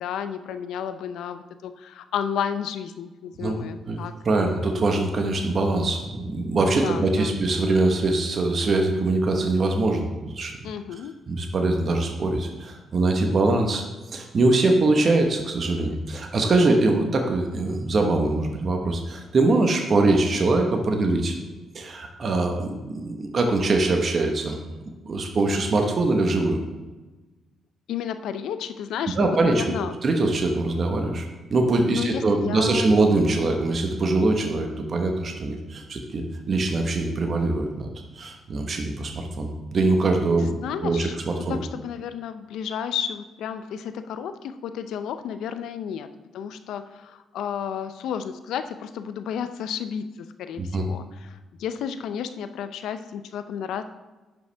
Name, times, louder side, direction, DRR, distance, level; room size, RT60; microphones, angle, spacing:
voice 1, 0.0-4.2 6.8-7.4 10.6-11.1 27.9-30.0 31.9-33.0 40.4-41.2 41.5-46.1 46.3-53.8, left 8 dB, 80° left, 10 dB, 0.5 m, -32 dB
voice 2, 3.9-10.6 11.3-13.8 14.1-21.3 21.7-24.6 25.0-26.6 29.2-29.6 30.0-37.9 38.1-40.5 40.8-41.6 50.6-50.9, right 2 dB, 50° right, 3 dB, 1.2 m, -23 dB
10.5 x 5.3 x 3.4 m, 1.2 s
supercardioid pair, 70°, 0 cm